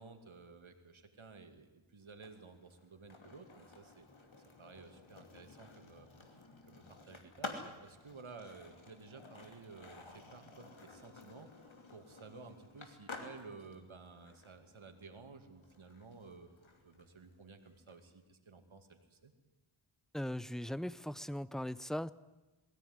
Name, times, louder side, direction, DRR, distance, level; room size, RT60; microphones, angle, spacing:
voice 1, 0.0-4.3 4.6-16.5 16.8-19.3, right 4 dB, 75° right, 7 dB, 2.5 m, -54 dB
Skateboard, 2.1-18.0, left 3 dB, 70° left, 2.9 m, -52 dB
voice 2, 20.1-22.1, left 1 dB, ahead, 17 dB, 0.7 m, -39 dB
21.5 x 16.0 x 9.6 m, 1.2 s
wide cardioid pair, 55°, 49 cm